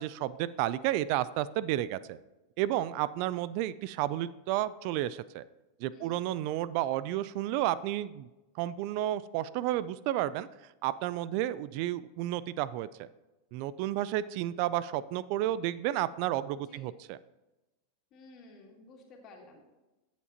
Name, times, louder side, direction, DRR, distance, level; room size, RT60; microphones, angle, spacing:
voice 1, 0.0-2.2 2.6-5.4 5.8-8.3 8.6-10.5 10.8-13.1 13.5-17.2, right 13 dB, 55° right, 17 dB, 0.3 m, -31 dB
voice 2, 5.9-6.3 16.7-16.9 18.1-19.6, left 3 dB, 45° left, 1 dB, 2.3 m, -53 dB
13.5 x 7.2 x 2.9 m, 1.1 s
hypercardioid pair, 110°, 0 cm